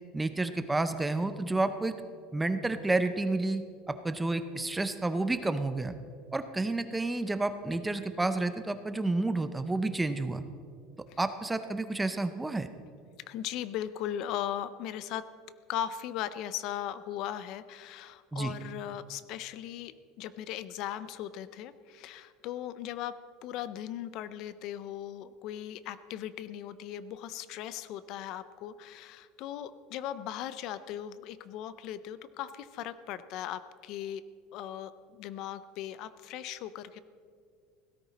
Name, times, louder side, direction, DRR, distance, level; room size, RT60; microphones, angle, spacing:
voice 1, 0.1-2.0 2.3-5.9 6.3-10.4 11.2-12.7 18.3-18.5, right 2 dB, 5° right, 10 dB, 0.5 m, -30 dB
voice 2, 13.2-15.3 15.7-23.1 23.4-34.2 34.5-37.0, left 11 dB, 45° left, 15 dB, 0.4 m, -38 dB
16.5 x 13.5 x 4.1 m, 2.2 s
cardioid pair, 170°, 0 cm